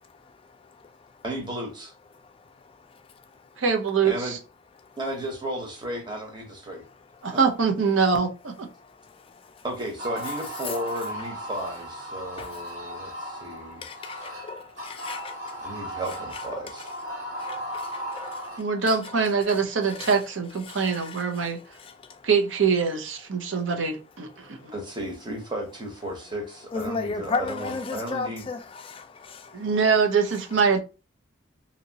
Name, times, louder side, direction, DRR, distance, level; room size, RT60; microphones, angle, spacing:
voice 1, 0.2-1.2 2.2-3.6 4.8-5.0 8.7-9.6 10.6-10.8 12.3-15.9 16.3-16.6 17.1-19.6 19.9-20.2 20.7-22.3 23.4-23.7 24.3-24.7 26.7-29.7, left 4 dB, 30° left, 0.4 m, -37 dB
voice 2, 1.2-1.9 4.0-4.4 5.0-6.8 9.6-13.8 15.6-16.9 24.7-28.5, right 1 dB, 25° right, 0.9 m, -34 dB
voice 3, 3.6-4.4 7.2-8.5 18.6-21.6 22.2-24.7 29.5-30.8, right 5 dB, 80° right, 0.6 m, -24 dB
sound 1, 10.0-18.6, equal, 65° right, 1.1 m, -36 dB
2.8 x 2.8 x 2.7 m
head